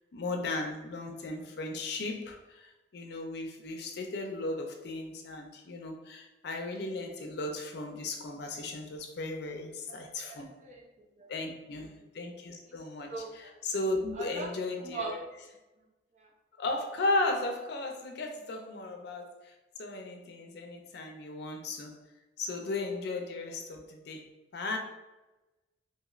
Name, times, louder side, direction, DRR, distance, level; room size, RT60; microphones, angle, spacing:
voice 1, 0.1-10.5 11.3-11.9 12.1-15.2 16.6-19.3 19.8-22.0 22.4-24.8, left 2 dB, 60° left, 3 dB, 0.4 m, -35 dB
voice 2, 9.9-11.3 11.7-11.8 12.7-12.8 13.1-13.6 14.1-14.5 14.8-15.1 16.2-16.3, right 4 dB, 40° right, 0 dB, 0.5 m, -42 dB
3.0 x 2.7 x 2.4 m, 1.1 s
head